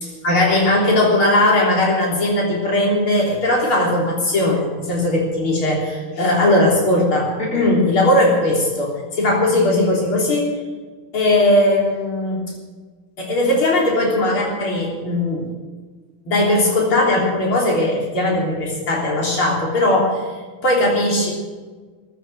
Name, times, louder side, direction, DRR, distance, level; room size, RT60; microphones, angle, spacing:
voice 1, 0.0-10.6 11.1-12.5 13.2-15.5 16.3-20.2 20.6-21.3, left 1 dB, 80° left, -2 dB, 4.4 m, -18 dB
15.0 x 10.5 x 7.8 m, 1.4 s
omnidirectional pair, 2.3 m